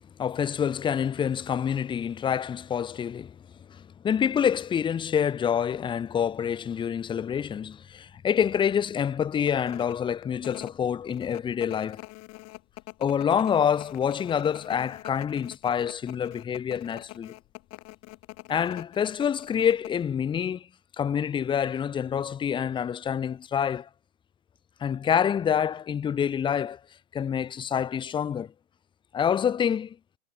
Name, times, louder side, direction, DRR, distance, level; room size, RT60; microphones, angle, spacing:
voice 1, 0.2-3.3 4.0-12.0 13.0-17.3 18.5-20.7 21.0-23.9 24.8-26.8 27.1-28.5 29.1-29.9, left 8 dB, 10° left, 0.8 m, -27 dB
sound 1, 5.0-5.2 5.7-5.8 6.1-7.0 7.4-7.5 7.9-8.2 8.5-8.6 9.2-20.0, left 23 dB, 35° left, 4.6 m, -44 dB
hypercardioid pair, 120°, 42 cm